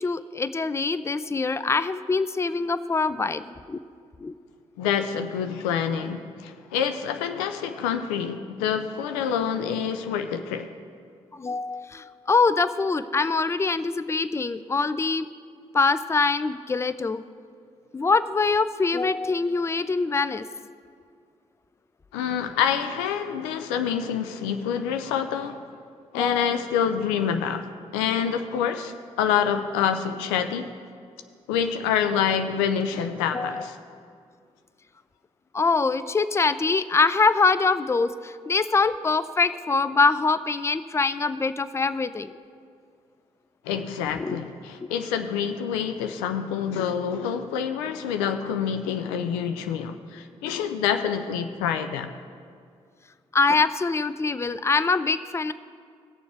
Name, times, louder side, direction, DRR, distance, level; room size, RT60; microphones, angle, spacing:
voice 1, 0.0-3.8 4.2-4.3 11.3-15.3 15.7-17.2 17.9-20.5 26.2-26.6 33.3-33.7 35.5-42.3 44.2-44.4 53.3-55.5, left 4 dB, 20° left, 14 dB, 0.4 m, -24 dB
voice 2, 4.8-10.7 22.1-25.7 26.1-30.7 31.5-33.8 43.7-52.1, left 8 dB, 85° left, 8 dB, 0.4 m, -27 dB
17.0 x 7.0 x 3.4 m, 2.2 s
hypercardioid pair, 40°, 15 cm